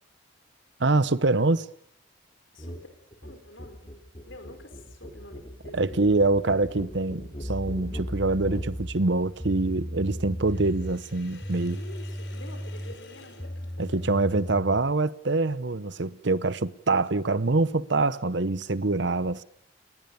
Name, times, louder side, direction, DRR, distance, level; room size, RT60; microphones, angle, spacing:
voice 1, 0.8-1.7 5.7-11.8 13.8-19.4, right 3 dB, 60° right, 0.9 m, -25 dB
sound 1, 2.6-2.8 3.1-8.7, equal, 30° left, 2.9 m, -41 dB
voice 2, 3.2-3.9 4.2-6.0 11.7-14.0, left 2 dB, 75° left, 4.8 m, -48 dB
sound 2, 7.4-14.9, equal, 10° left, 0.9 m, -36 dB
Sink (filling or washing), 10.5-14.4, left 3 dB, 60° left, 4.8 m, -51 dB
29.0 x 20.0 x 7.0 m
head